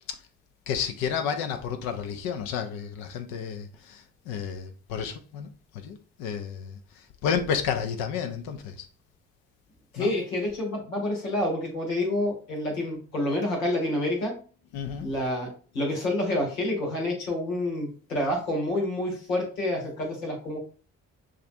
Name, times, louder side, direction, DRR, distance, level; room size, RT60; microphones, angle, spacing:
voice 1, 0.7-5.5 5.7-8.9 10.0-10.1 14.7-15.1, left 7 dB, 65° left, 0.7 m, -31 dB
voice 2, 9.9-14.3 15.0-20.6, left 1 dB, 85° left, 1.1 m, -28 dB
6.5 x 2.4 x 2.6 m
figure-of-eight pair, 40°, 39 cm